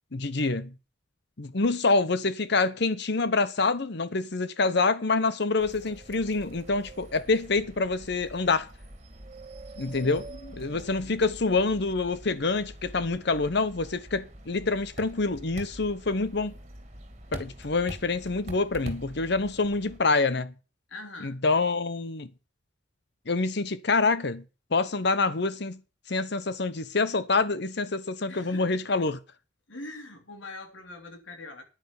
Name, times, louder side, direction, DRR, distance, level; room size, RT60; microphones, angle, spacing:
voice 1, 0.1-0.7 1.4-8.7 9.8-10.2 10.6-16.5 17.3-20.5 21.2-22.3 23.3-24.4 24.7-25.8 26.1-29.2, left 3 dB, 60° left, 0.9 m, -26 dB
sound 1, 5.6-20.0, right 1 dB, 35° right, 2.6 m, -45 dB
voice 2, 9.8-11.0 20.9-21.4 28.3-28.7 29.7-31.6, left 2 dB, 90° left, 3.3 m, -43 dB
10.0 x 9.4 x 7.1 m
head